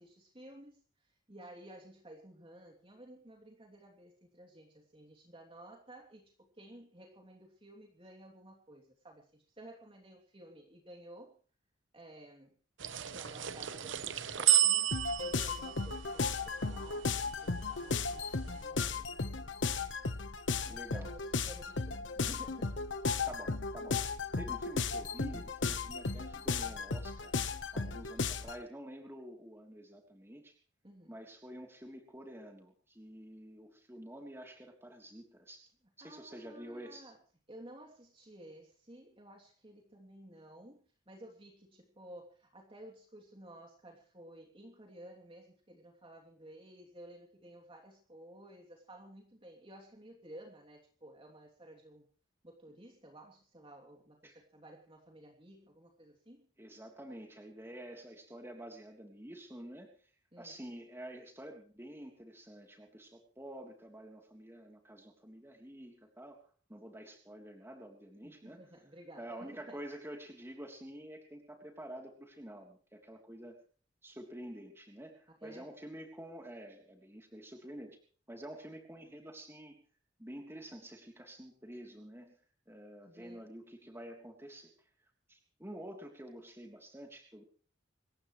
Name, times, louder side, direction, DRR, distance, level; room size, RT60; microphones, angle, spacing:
voice 1, 0.0-11.4 11.9-12.6 13.1-14.9 15.2-20.0 20.2-22.8 27.7-28.0 30.8-31.1 36.0-37.2 37.5-52.1 52.4-56.5 60.3-60.6 68.2-69.8 75.3-75.7 83.0-83.5, right 1 dB, 30° right, 1 dB, 3.0 m, -54 dB
sound 1, 12.8-17.4, right 11 dB, 85° right, 0.9 m, -32 dB
sound 2, 14.9-28.6, left 4 dB, 80° left, 1.2 m, -35 dB
voice 2, 20.7-21.1 23.3-24.0 24.4-27.3 27.7-30.5 31.1-35.7 36.0-37.1 54.2-54.4 56.6-59.9 60.4-66.4 66.7-68.6 69.2-73.6 74.0-78.0 78.3-79.8 80.2-82.4 82.7-84.7 85.3-87.4, right 1 dB, 15° right, 2 dB, 3.3 m, -48 dB
26.5 x 15.0 x 3.2 m, 0.41 s
head